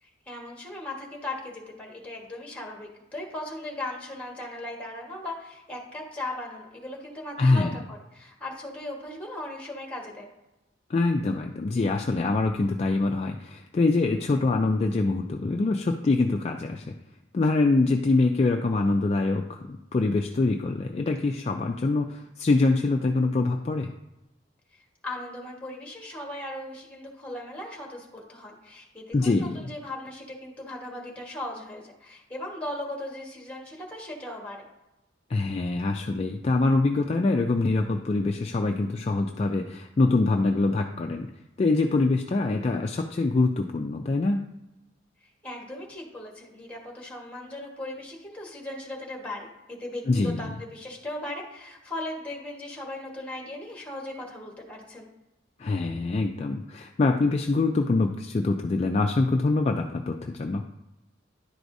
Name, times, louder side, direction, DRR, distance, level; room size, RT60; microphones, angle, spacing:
voice 1, 0.0-10.3 24.7-34.6 45.2-55.1, left 1 dB, 5° left, -1 dB, 1.3 m, -38 dB
voice 2, 7.4-7.8 10.9-17.0 17.3-23.9 29.1-29.7 35.3-41.3 41.6-44.5 50.1-50.5 55.6-60.6, left 3 dB, 30° left, 3 dB, 0.3 m, -24 dB
10.5 x 4.7 x 2.6 m, 0.95 s
head